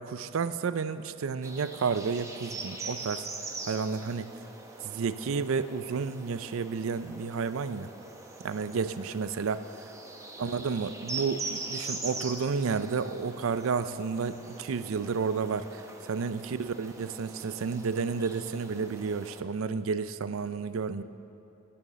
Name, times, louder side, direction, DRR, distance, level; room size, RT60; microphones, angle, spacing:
voice 1, 0.0-3.3 3.7-4.3 4.8-7.9 8.4-9.6 10.4-21.0, right 5 dB, 70° right, 13 dB, 0.4 m, -31 dB
sound 1, 1.4-19.4, right 3 dB, 15° right, 0.8 m, -42 dB
10.5 x 6.9 x 7.4 m, 2.8 s
head